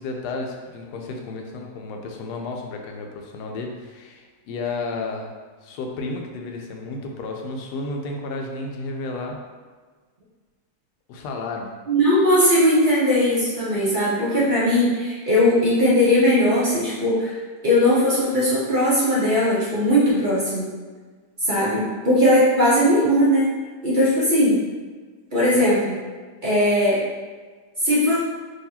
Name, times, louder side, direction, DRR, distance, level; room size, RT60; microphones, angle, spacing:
voice 1, 0.0-5.3 5.6-9.4 11.1-11.7, left 3 dB, 90° left, 2 dB, 1.2 m, -32 dB
voice 2, 11.9-20.7 21.4-23.5 23.8-24.6 25.3-26.0 26.4-27.0 27.8-28.2, left 1 dB, 40° right, -9 dB, 0.8 m, -19 dB
3.9 x 2.9 x 2.7 m, 1.5 s
omnidirectional pair, 1.7 m